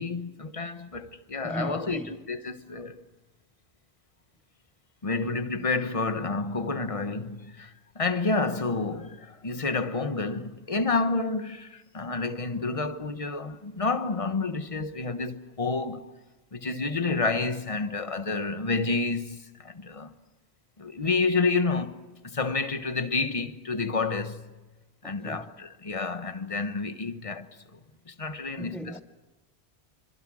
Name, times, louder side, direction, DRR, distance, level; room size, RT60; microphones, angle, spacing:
voice 1, 0.0-3.0 5.0-16.1 16.5-20.1 20.8-22.0 22.2-24.5 25.0-27.8 28.1-29.0, left 3 dB, 30° left, 1.3 m, -29 dB
voice 2, 1.4-2.2 25.0-25.5 28.6-29.0, right 1 dB, ahead, 0.8 m, -37 dB
26.5 x 26.0 x 6.3 m
omnidirectional pair, 1.1 m